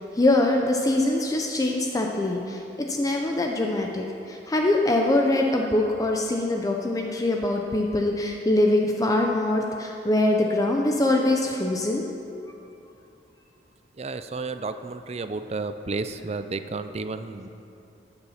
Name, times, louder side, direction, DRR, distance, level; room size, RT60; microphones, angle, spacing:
voice 1, 0.1-12.0, left 1 dB, 20° left, 1 dB, 0.6 m, -23 dB
voice 2, 14.0-17.5, right 3 dB, 35° right, 10 dB, 0.5 m, -32 dB
15.5 x 6.8 x 5.7 m, 2.8 s
head